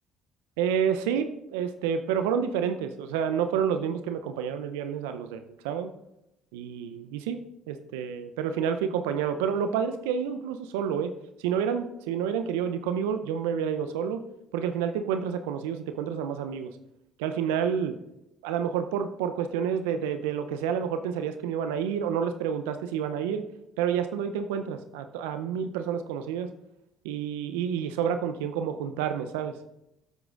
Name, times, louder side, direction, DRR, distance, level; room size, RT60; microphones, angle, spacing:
voice 1, 0.6-5.9 6.5-7.4 7.7-11.1 11.4-14.2 14.5-16.7 17.2-18.0 18.4-23.4 23.8-26.5 27.0-29.5, right 8 dB, 80° right, 9 dB, 0.5 m, -29 dB
15.5 x 7.9 x 2.5 m, 0.85 s
hypercardioid pair, 55°, 0 cm